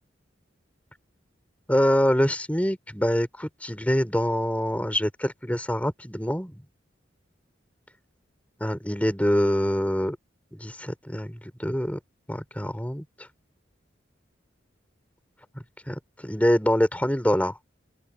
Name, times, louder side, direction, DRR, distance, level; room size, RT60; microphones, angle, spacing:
voice 1, 1.7-6.6 8.6-10.2 10.5-12.0 12.3-13.0 15.9-17.6, equal, 10° left, 4.0 m, -25 dB
open air
head